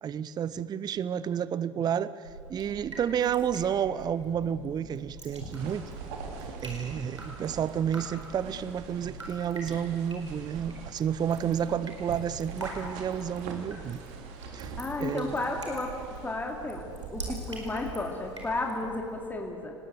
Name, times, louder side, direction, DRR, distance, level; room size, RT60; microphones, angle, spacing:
voice 1, 0.0-5.9 6.6-14.0 14.5-14.7 15.0-15.4, right 8 dB, 25° right, 18 dB, 0.7 m, -30 dB
Drip, 2.2-19.2, right 2 dB, 85° right, 4.8 m, -44 dB
sound 1, 5.3-18.7, right 5 dB, 55° right, 3.2 m, -45 dB
voice 2, 14.8-15.9 16.2-19.7, left 2 dB, 10° left, 1 dB, 2.7 m, -33 dB
29.5 x 19.5 x 7.9 m, 2.6 s
figure-of-eight pair, 70°, 15 cm